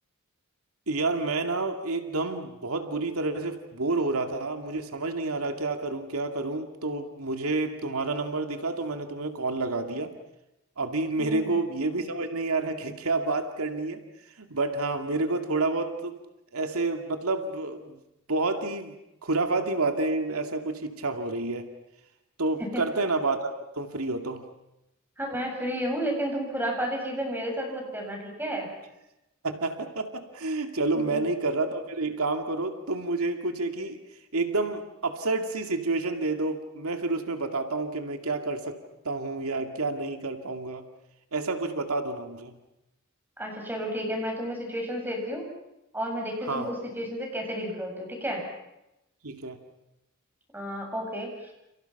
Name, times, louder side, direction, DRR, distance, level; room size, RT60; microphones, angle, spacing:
voice 1, 0.9-10.1 10.8-16.2 16.5-18.0 18.3-18.9 19.2-21.7 22.4-24.4 29.4-34.0 34.3-38.8 39.0-40.9 41.3-42.6 46.5-46.7 49.2-49.6, right 3 dB, 90° right, 6 dB, 2.4 m, -29 dB
voice 2, 11.2-11.5 22.6-22.8 25.2-28.7 30.9-31.2 43.4-45.5 45.9-48.4 50.5-51.5, equal, 10° right, 1 dB, 7.8 m, -32 dB
30.0 x 29.0 x 5.9 m, 0.90 s
head